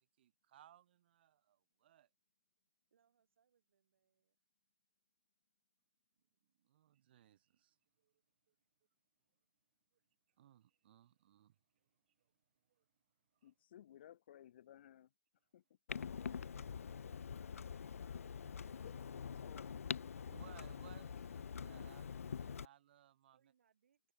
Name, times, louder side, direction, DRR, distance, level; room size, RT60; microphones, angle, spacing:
voice 1, 0.0-2.1 6.6-7.8 8.0-8.1 10.4-11.6 12.7-12.8 13.4-13.5 20.3-23.4, right 12 dB, 45° right, 2.5 m, -64 dB
voice 2, 2.9-4.4 23.3-24.0, right 8 dB, 65° right, 7.5 m, -80 dB
voice 3, 13.4-15.1 15.5-15.6 18.6-19.8 21.1-21.2, left 11 dB, 50° left, 1.6 m, -59 dB
Clock, 15.9-22.7, left 6 dB, 85° left, 0.4 m, -45 dB
hypercardioid pair, 155°, 7 cm